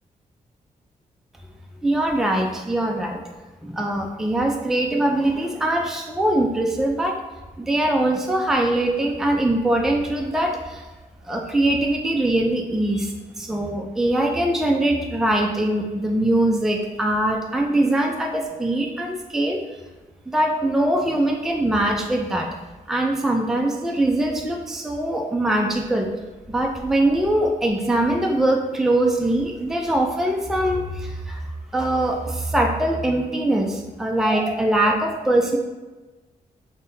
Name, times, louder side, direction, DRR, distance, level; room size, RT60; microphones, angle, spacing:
voice 1, 1.8-3.2 3.6-7.2 7.6-10.9 11.2-19.6 20.3-22.5 22.9-26.1 26.5-35.6, right 1 dB, 5° right, 1 dB, 0.4 m, -22 dB
5.4 x 2.1 x 2.6 m, 1.2 s
cardioid pair, 95°, 14 cm